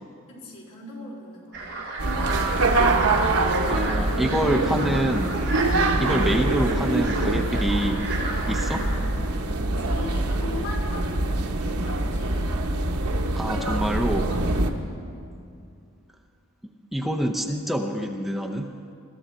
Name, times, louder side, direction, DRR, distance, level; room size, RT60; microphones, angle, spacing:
voice 1, 0.3-1.7 8.7-9.0 9.6-12.5 14.8-15.1, left 2 dB, 85° left, -3 dB, 4.1 m, -40 dB
sound 1, 1.5-9.0, right 2 dB, 50° right, 3.1 m, -34 dB
sound 2, 2.0-14.7, right 2 dB, 80° right, 1.1 m, -24 dB
voice 2, 3.7-5.5 6.0-8.1 8.5-8.8 13.4-14.3 16.9-18.7, right 1 dB, ahead, 2 dB, 0.6 m, -26 dB
21.5 x 14.0 x 4.3 m, 2.4 s
head